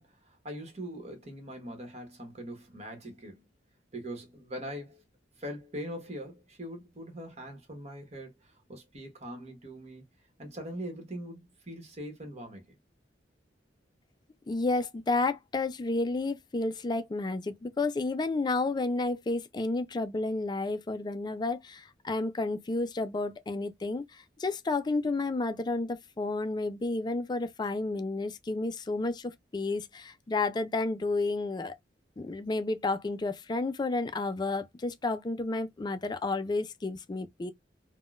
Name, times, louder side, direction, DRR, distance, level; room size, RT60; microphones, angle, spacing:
voice 1, 0.0-3.4 3.9-5.0 5.4-10.0 10.4-12.8, equal, 40° right, 1.2 m, -42 dB
voice 2, 14.5-31.8 32.2-37.5, left 3 dB, 25° left, 0.3 m, -31 dB
3.6 x 2.2 x 2.4 m
head